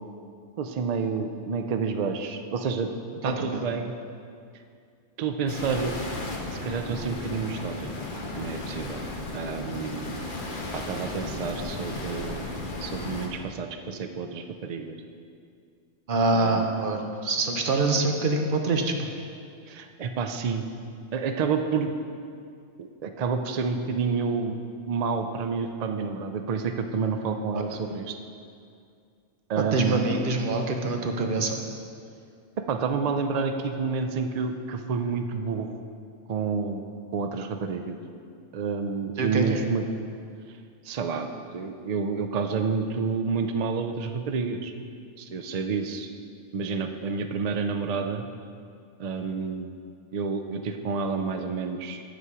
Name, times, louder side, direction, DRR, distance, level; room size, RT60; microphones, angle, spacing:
voice 1, 0.6-2.9 3.2-3.9 5.2-6.0 6.5-7.9 8.4-9.0 9.3-10.2 10.7-12.5 12.8-15.0 16.3-16.7 19.7-20.6 21.1-21.9 22.8-24.6 24.9-28.1 29.5-30.1 32.7-35.8 36.3-36.8 37.1-38.0 38.5-39.8 40.8-41.3 41.5-44.7 45.2-46.1 46.5-48.3 49.0-49.7 50.1-52.0, right 5 dB, 85° right, 6 dB, 0.3 m, -29 dB
voice 2, 3.2-3.6 16.1-19.1 27.5-27.6 29.6-31.6 39.2-39.6, right 3 dB, 45° right, 3 dB, 0.9 m, -25 dB
sound 1, 5.5-13.3, left 2 dB, 45° left, 1.1 m, -35 dB
8.4 x 7.7 x 4.8 m, 2.3 s
omnidirectional pair, 1.3 m